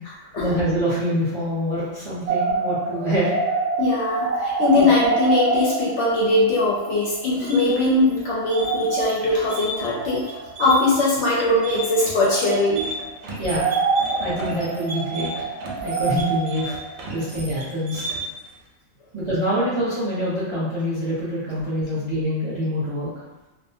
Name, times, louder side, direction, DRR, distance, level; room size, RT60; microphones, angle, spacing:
voice 1, 0.4-3.3 4.7-4.9 13.4-13.8 14.2-15.5 15.8-16.8 17.1-18.1 19.1-23.1, equal, 25° right, -11 dB, 0.7 m, -25 dB
sound 1, 2.3-7.7 7.9-8.0 8.3-10.6 11.4-13.1 13.4-17.4, right 4 dB, 65° right, 0.8 m, -27 dB
voice 2, 3.8-12.9, left 2 dB, 65° left, -5 dB, 0.8 m, -21 dB
sound 2, 7.3-18.5, right 1 dB, 85° right, 1.0 m, -34 dB
2.5 x 2.2 x 2.6 m, 1.1 s
omnidirectional pair, 1.4 m